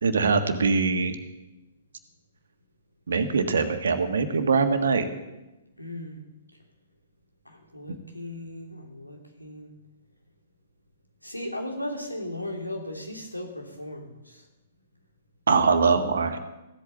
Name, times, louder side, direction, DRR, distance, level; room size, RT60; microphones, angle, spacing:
voice 1, 0.0-1.2 3.1-5.1 15.5-16.4, right 4 dB, 60° right, 8 dB, 1.5 m, -22 dB
voice 2, 5.8-6.2 7.5-9.7 11.2-14.4, left 1 dB, 90° left, 2 dB, 2.9 m, -37 dB
15.0 x 8.5 x 7.9 m, 1.0 s
figure-of-eight pair, 115°, 0 cm